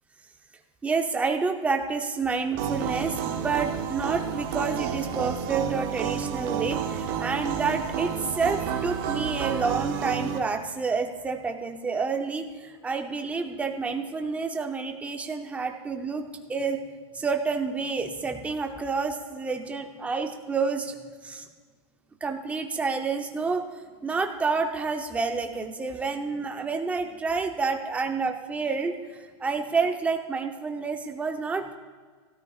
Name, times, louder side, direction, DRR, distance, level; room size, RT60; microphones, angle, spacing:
voice 1, 0.8-12.5 12.8-16.8 17.2-20.9 21.2-21.4 22.2-23.6 24.0-29.0 29.4-31.8, right 4 dB, 10° right, 4 dB, 0.8 m, -29 dB
sound 1, 2.6-10.4, right 8 dB, 50° right, 1.3 m, -30 dB
16.5 x 13.0 x 2.5 m, 1.5 s
supercardioid pair, 150°, 15 cm